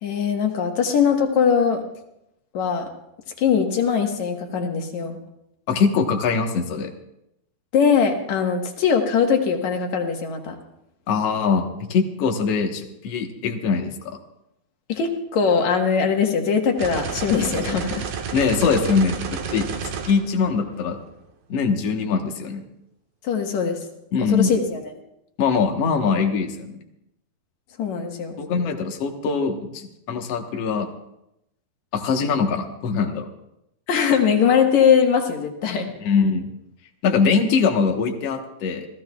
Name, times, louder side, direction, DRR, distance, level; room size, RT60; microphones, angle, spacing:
voice 1, 0.0-1.8 2.5-2.9 3.4-5.2 7.7-10.6 14.9-18.1 23.2-23.8 24.2-24.9 27.8-28.4 33.9-35.9, left 6 dB, 60° left, 3 dB, 2.1 m, -21 dB
voice 2, 5.7-6.9 11.1-14.2 18.3-19.7 20.1-21.0 21.5-22.6 24.1-24.5 25.4-26.8 28.4-30.9 31.9-33.3 36.0-36.5 37.0-38.9, left 5 dB, 80° left, 2 dB, 1.4 m, -22 dB
sound 1, 16.8-21.0, right 6 dB, 70° right, 3.4 m, -31 dB
28.5 x 15.5 x 2.4 m, 0.84 s
omnidirectional pair, 4.9 m